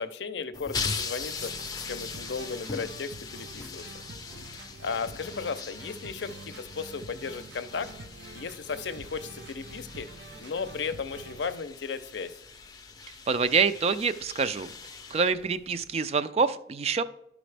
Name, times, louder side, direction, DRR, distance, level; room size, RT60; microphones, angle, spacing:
voice 1, 0.0-1.5 1.8-3.8 4.8-7.9 8.3-10.1 10.4-12.3, left 5 dB, 85° left, 11 dB, 0.5 m, -35 dB
sound 1, 0.5-15.9, left 5 dB, 20° left, 0.5 m, -40 dB
sound 2, 1.2-11.5, right 2 dB, 85° right, 0.7 m, -47 dB
voice 2, 13.3-14.7 15.1-17.0, right 5 dB, 35° right, 12 dB, 0.3 m, -26 dB
11.5 x 5.0 x 3.3 m, 0.78 s
head